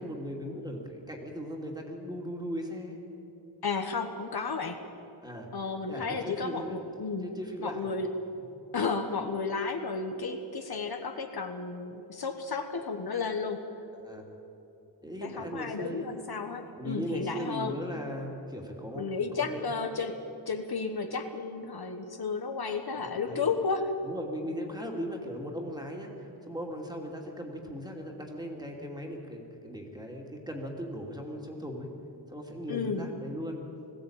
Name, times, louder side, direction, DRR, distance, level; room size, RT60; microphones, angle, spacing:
voice 1, 0.0-3.0 5.2-5.5 5.9-6.8 7.2-8.0 8.3-8.5 14.0-14.3 15.0-16.1 16.8-19.6 22.9-23.4 24.0-31.9 32.3-33.6, equal, 10° right, 1 dB, 2.6 m, -38 dB
voice 2, 3.6-4.8 5.5-7.3 7.6-8.1 8.7-13.7 15.2-17.8 18.9-20.2 20.5-23.9 32.7-33.1, left 4 dB, 55° left, 6 dB, 1.3 m, -33 dB
20.5 x 16.0 x 8.8 m, 3.0 s
wide cardioid pair, 140°, 44 cm